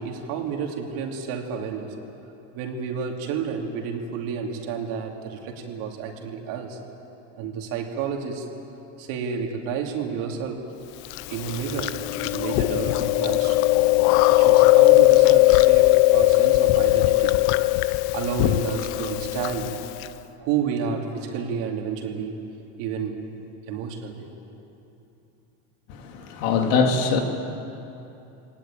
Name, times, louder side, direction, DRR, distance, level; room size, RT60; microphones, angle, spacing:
voice 1, 0.0-1.9 2.5-6.8 7.4-8.5 9.0-10.7 11.3-13.7 14.3-17.4 18.1-19.8 20.4-22.4 22.8-23.2 23.7-24.3, right 6 dB, 60° right, 2 dB, 3.0 m, -30 dB
Chewing mastication, 11.1-20.1, left 18 dB, 55° left, 0.7 m, -19 dB
voice 2, 25.9-27.2, left 5 dB, 75° left, 3 dB, 2.9 m, -22 dB
22.0 x 18.5 x 8.9 m, 3.0 s
cardioid pair, 150°, 37 cm